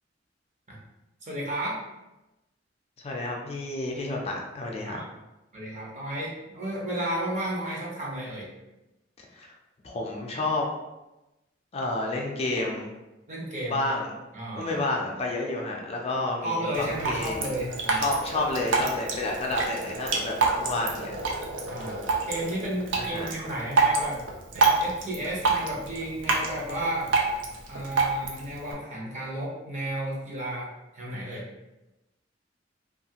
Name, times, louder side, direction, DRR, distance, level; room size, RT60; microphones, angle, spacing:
voice 1, 1.2-1.8 4.8-5.0 5.5-8.5 13.3-13.8 14.3-14.7 16.4-18.1 21.7-24.2 24.5-27.1 27.7-31.4, right 1 dB, 40° right, -4 dB, 0.8 m, -33 dB
voice 2, 3.0-5.0 9.3-9.5 9.8-10.7 11.7-12.9 13.7-14.1 14.6-17.4 17.9-21.1 23.0-23.3, left 2 dB, 35° left, 0 dB, 0.4 m, -30 dB
Drip, 16.7-28.7, right 3 dB, 90° right, 0.5 m, -28 dB
2.7 x 2.4 x 2.8 m, 0.99 s
head